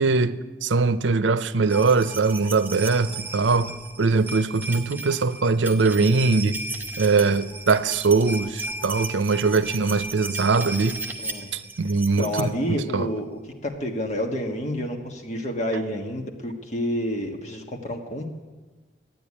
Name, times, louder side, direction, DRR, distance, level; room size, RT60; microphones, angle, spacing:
voice 1, 0.0-6.6 7.0-11.0 11.5-13.1, right 4 dB, 90° right, 0.6 m, -22 dB
sound 1, 1.7-12.5 13.5-13.6 13.8-13.9, right 2 dB, 10° right, 0.8 m, -35 dB
voice 2, 11.2-11.5 12.2-18.5, equal, 40° left, 1.5 m, -29 dB
12.5 x 9.2 x 9.7 m
head